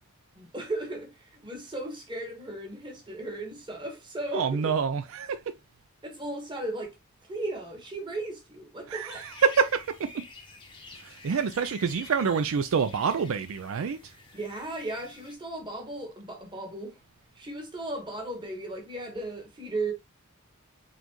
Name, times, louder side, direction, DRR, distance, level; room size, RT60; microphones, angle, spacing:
voice 1, 0.4-4.7 6.0-7.0 7.2-9.3 14.3-17.0 17.3-19.9, right 2 dB, 20° right, 1.3 m, -36 dB
voice 2, 4.3-5.4 8.9-9.9 11.0-14.0, right 6 dB, 65° right, 0.4 m, -27 dB
sound 1, 9.1-15.3, left 3 dB, 20° left, 0.7 m, -49 dB
4.0 x 3.9 x 3.0 m
head